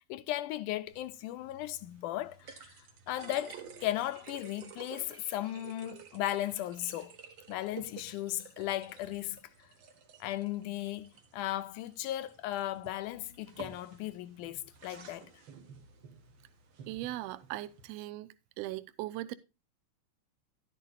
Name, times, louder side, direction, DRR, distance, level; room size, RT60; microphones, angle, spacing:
voice 1, 0.0-2.7 3.1-7.1 7.5-9.4 10.2-15.3, left 14 dB, 80° left, 2.1 m, -36 dB
sound 1, 0.9-17.9, right 6 dB, 50° right, 1.6 m, -53 dB
voice 2, 16.9-18.3 18.6-19.3, right 16 dB, 80° right, 1.5 m, -39 dB
11.5 x 11.0 x 2.3 m
omnidirectional pair, 3.6 m